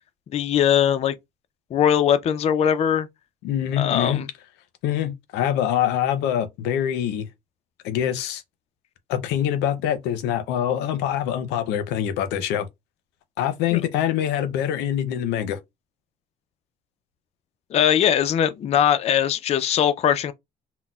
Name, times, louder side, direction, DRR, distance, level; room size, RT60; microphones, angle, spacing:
voice 1, 0.3-1.2 1.7-3.1 3.8-4.3 13.7-13.8 17.7-20.3, left 9 dB, 40° left, 0.4 m, -20 dB
voice 2, 3.4-4.2 4.8-7.3 7.8-8.4 9.1-12.7 13.4-15.6, left 10 dB, 90° left, 0.5 m, -24 dB
3.8 x 2.0 x 2.2 m
cardioid pair, 110°, 17 cm